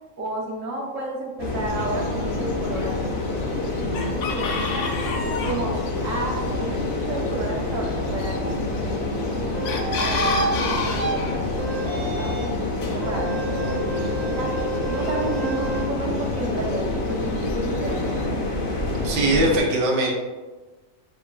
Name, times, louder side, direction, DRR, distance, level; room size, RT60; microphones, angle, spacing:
voice 1, 0.2-3.9 4.2-4.8 5.2-5.7 6.0-9.5 9.9-12.6 12.9-14.5 14.9-18.4, right 2 dB, 85° right, -2 dB, 1.3 m, -32 dB
sound 1, 1.4-19.6, left 2 dB, 50° left, 0.8 m, -27 dB
Chicken rooster, 1.7-18.3, left 4 dB, 75° left, 0.9 m, -35 dB
sound 2, 9.5-10.5 11.0-11.1 11.5-12.6 13.0-15.8, right 5 dB, 45° right, 0.5 m, -30 dB
voice 2, 19.0-20.1, right 2 dB, 65° right, -1 dB, 1.0 m, -21 dB
6.4 x 3.1 x 2.3 m, 1.2 s
omnidirectional pair, 1.3 m